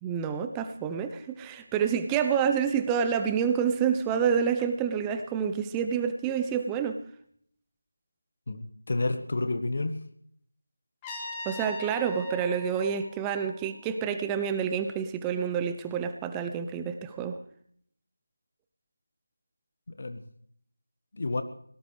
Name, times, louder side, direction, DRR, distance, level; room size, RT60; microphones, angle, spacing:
voice 1, 0.0-7.0 11.5-17.4, right 7 dB, 10° right, 8 dB, 0.6 m, -28 dB
voice 2, 8.5-9.9 20.0-20.2 21.1-21.4, left 2 dB, 50° left, 9 dB, 1.4 m, -30 dB
Trumpet, 11.0-14.0, left 2 dB, 10° left, 2.3 m, -42 dB
22.5 x 18.0 x 3.3 m, 0.66 s
figure-of-eight pair, 170°, 0 cm